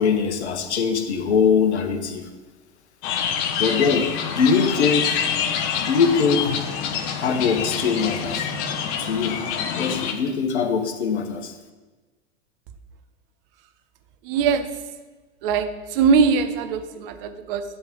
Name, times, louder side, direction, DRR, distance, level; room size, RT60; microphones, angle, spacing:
voice 1, 0.0-2.3 3.6-5.2 5.8-6.6 7.2-8.5 9.0-9.4 9.8-11.5, left 5 dB, 75° left, 7 dB, 1.0 m, -22 dB
sound 1, 3.0-10.1, left 7 dB, 45° left, 1.0 m, -26 dB
voice 2, 14.3-14.7 15.4-15.7 15.9-17.6, right 5 dB, 55° right, 9 dB, 0.9 m, -21 dB
10.5 x 3.6 x 5.3 m, 1.3 s
hypercardioid pair, 95°, 34 cm